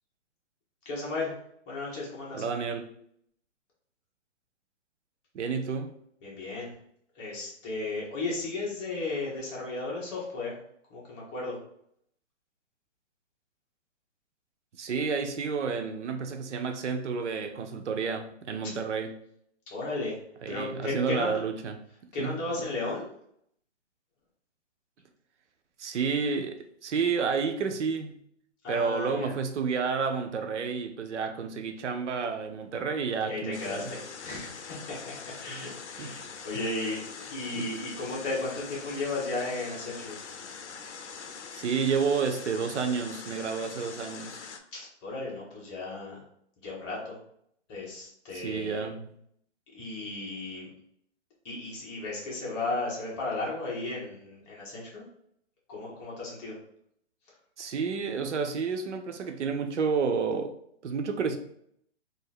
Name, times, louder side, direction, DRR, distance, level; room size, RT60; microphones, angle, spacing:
voice 1, 0.8-1.4 1.7-2.4 6.2-6.7 7.1-10.6 10.9-11.6 19.7-20.2 20.5-21.4 22.1-23.1 28.6-29.3 33.3-40.2 44.7-46.2 46.6-47.2 47.7-48.9 49.7-50.7 51.4-55.0 55.7-56.6 57.3-57.4, left 2 dB, 25° left, 1.2 m, -35 dB
voice 2, 2.3-2.9 5.3-5.9 14.8-19.1 20.4-21.7 22.2-22.3 25.8-28.2 28.7-33.9 36.0-36.1 37.5-37.7 41.5-44.4 48.3-49.0 57.6-60.5 60.8-61.4, right 5 dB, 75° right, 0.6 m, -30 dB
sound 1, 33.5-44.6, left 6 dB, 70° left, 0.7 m, -43 dB
2.8 x 2.7 x 4.0 m
hypercardioid pair, 150°, 36 cm